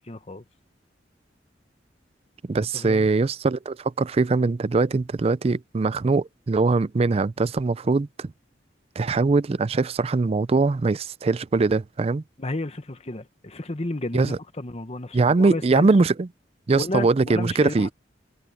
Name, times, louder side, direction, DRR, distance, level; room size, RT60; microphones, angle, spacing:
voice 1, 0.1-0.4 2.6-3.1 12.4-15.9 16.7-17.9, left 1 dB, 35° left, 1.3 m, -32 dB
voice 2, 2.5-8.3 9.0-12.2 14.1-14.4 15.1-16.3 16.7-17.9, right 3 dB, 35° right, 0.4 m, -22 dB
head